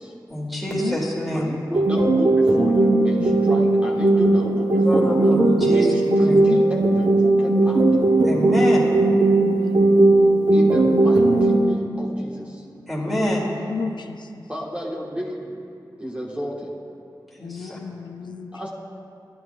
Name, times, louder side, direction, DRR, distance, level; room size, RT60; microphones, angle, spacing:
voice 1, 0.3-1.5 4.7-5.9 6.2-6.4 8.2-8.8 12.9-13.6 17.3-17.8, equal, ahead, -5 dB, 2.1 m, -26 dB
voice 2, 1.3-5.3 5.7-7.8 9.7-9.8 10.5-12.6 14.5-15.5 16.0-16.7 18.5-18.7, equal, 15° right, -3 dB, 1.3 m, -32 dB
sound 1, 1.7-11.7, right 2 dB, 65° right, 0.7 m, -17 dB
voice 3, 9.4-10.4 13.1-13.2 13.7-14.2 17.4-18.5, left 5 dB, 80° left, 6 dB, 0.4 m, -33 dB
11.5 x 11.0 x 2.3 m, 2.4 s
wide cardioid pair, 80°, 8 cm